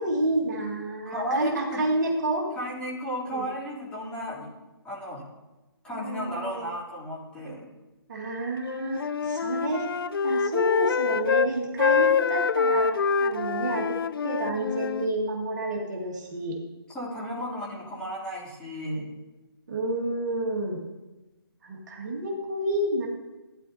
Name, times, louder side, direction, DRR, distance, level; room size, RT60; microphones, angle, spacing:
voice 1, 0.0-2.5 3.3-3.5 5.9-6.7 8.1-10.0 10.2-12.9 13.2-14.0 14.2-16.6 19.7-20.8 21.6-23.1, right 1 dB, 45° right, -1 dB, 2.0 m, -29 dB
voice 2, 1.1-1.9 2.6-4.5 4.8-5.2 5.8-7.7 16.9-19.1, equal, 5° left, -8 dB, 3.2 m, -34 dB
Wind instrument woodwind instrument, 8.6-11.5 11.8-15.1, left 6 dB, 65° left, 0.5 m, -25 dB
15.5 x 9.7 x 2.8 m, 1.1 s
figure-of-eight pair, 145°, 13 cm